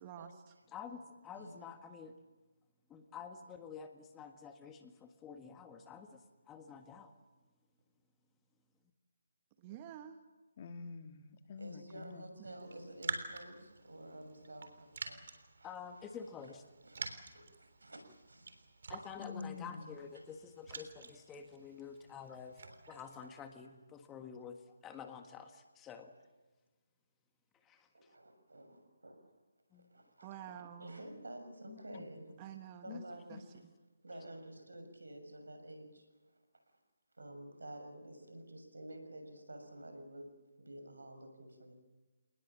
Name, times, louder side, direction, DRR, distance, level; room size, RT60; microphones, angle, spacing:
voice 1, 0.0-0.5 9.6-10.2 12.4-12.5 30.2-31.1 32.4-33.0 33.3-33.4, right 10 dB, 25° right, 7 dB, 1.2 m, -49 dB
voice 2, 0.7-2.1 2.9-7.1 15.6-16.6 18.9-26.1 27.6-27.9 29.7-29.9, left 6 dB, 10° left, 6 dB, 1.6 m, -49 dB
voice 3, 1.3-1.6 11.6-15.7 16.8-18.7 28.1-29.3 29.7-30.3 30.8-32.4 32.8-33.6 34.0-36.1 36.6-36.8 37.2-41.7, right 1 dB, 85° right, 6 dB, 6.7 m, -51 dB
voice 4, 10.6-12.2 19.2-20.0 31.6-32.1 32.9-33.0 33.3-33.4, left 5 dB, 35° left, 7 dB, 1.7 m, -47 dB
Raindrop, 12.6-23.3, right 4 dB, 60° right, 3.6 m, -48 dB
28.0 x 19.5 x 7.5 m, 1.2 s
figure-of-eight pair, 160°, 0 cm